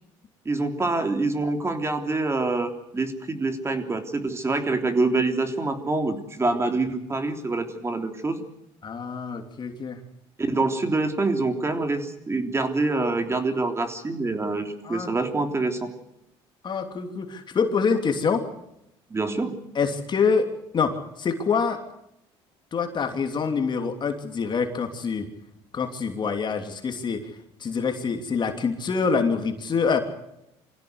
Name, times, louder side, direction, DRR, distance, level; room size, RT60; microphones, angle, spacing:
voice 1, 0.4-8.4 10.4-15.9 19.1-19.5, right 3 dB, 20° right, 6 dB, 3.3 m, -26 dB
voice 2, 8.8-10.0 14.8-15.1 16.6-18.4 19.7-20.5 20.7-21.8 22.7-25.3 25.7-27.3 27.6-30.0, left 5 dB, 40° left, 5 dB, 3.1 m, -25 dB
25.0 x 16.5 x 8.1 m, 0.82 s
supercardioid pair, 90°, 12 cm